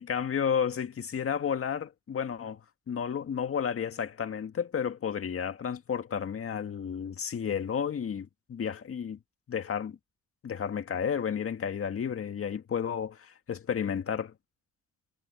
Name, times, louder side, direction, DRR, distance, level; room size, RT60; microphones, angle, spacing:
voice 1, 0.0-2.6 2.9-9.2 9.5-10.0 10.4-14.3, left 7 dB, 45° left, 1.9 m, -32 dB
cardioid pair, 90°, 30 cm